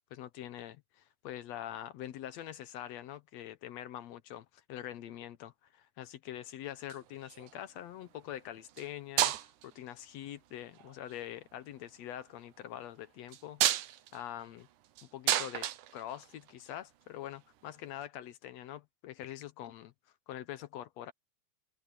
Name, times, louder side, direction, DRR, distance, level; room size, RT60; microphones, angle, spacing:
voice 1, 0.1-13.6 14.1-14.7 15.1-19.9 20.3-21.1, left 12 dB, 70° left, 1.9 m, -44 dB
sound 1, 6.7-7.6 8.7-8.9 9.2-9.8 10.7-11.2 13.3-16.7 18.0-18.1, right 12 dB, 90° right, 2.5 m, -32 dB
omnidirectional pair, 3.5 m